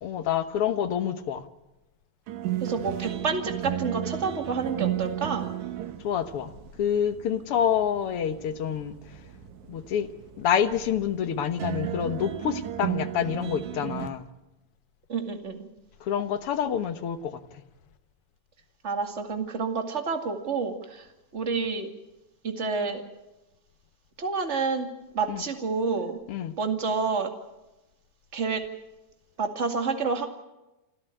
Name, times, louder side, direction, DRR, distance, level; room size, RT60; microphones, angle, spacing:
voice 1, 0.0-1.4 6.0-6.5 6.8-9.0 9.7-10.1 10.4-14.3 16.0-17.6 25.3-25.4 26.3-26.5, left 8 dB, 60° left, 10 dB, 1.8 m, -27 dB
sound 1, 2.3-14.1, right 12 dB, 80° right, 2.6 m, -35 dB
voice 2, 2.6-5.5 15.1-15.6 18.8-21.0 21.3-21.9 22.4-23.0 24.2-26.2 26.6-27.3 28.3-28.6 29.4-30.3, right 4 dB, 25° right, 5 dB, 2.1 m, -29 dB
27.5 x 13.5 x 9.0 m, 1.0 s
omnidirectional pair, 3.3 m